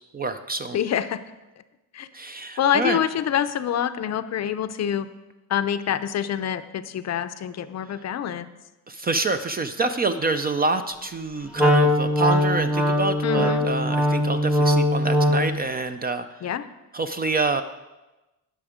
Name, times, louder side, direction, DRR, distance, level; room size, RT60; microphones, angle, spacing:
voice 1, 0.1-0.8 2.1-3.0 8.9-16.2 16.9-17.6, right 3 dB, 25° right, 9 dB, 0.4 m, -26 dB
voice 2, 0.7-1.2 1.9-2.1 2.6-5.1 5.5-8.5 13.2-13.7 16.4-16.7, left 9 dB, 45° left, 12 dB, 0.6 m, -26 dB
Wind instrument woodwind instrument, 11.6-15.6, equal, 5° right, 0.8 m, -21 dB
18.5 x 6.9 x 5.0 m, 1.1 s
cardioid pair, 165°, 38 cm